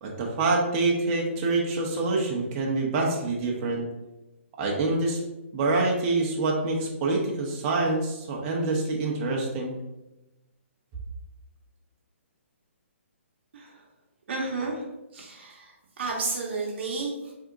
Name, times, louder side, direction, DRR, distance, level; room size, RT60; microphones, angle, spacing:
voice 1, 0.0-3.8 4.6-5.2 5.5-9.7, right 3 dB, 30° right, -1 dB, 0.7 m, -26 dB
voice 2, 13.5-13.8 14.3-14.8 15.1-17.3, right 3 dB, 55° right, -3 dB, 0.9 m, -32 dB
3.5 x 2.7 x 3.8 m, 0.98 s
hypercardioid pair, 150°, 7 cm